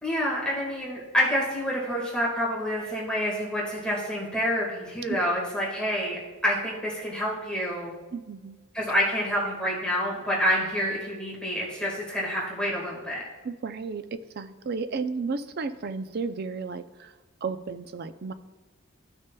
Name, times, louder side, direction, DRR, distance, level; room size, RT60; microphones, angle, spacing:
voice 1, 0.0-7.9 8.7-13.2, equal, 5° left, -4 dB, 1.7 m, -28 dB
voice 2, 8.1-8.6 13.4-17.1 17.4-18.3, right 4 dB, 50° right, 11 dB, 0.4 m, -33 dB
14.0 x 6.4 x 2.2 m, 1.2 s
head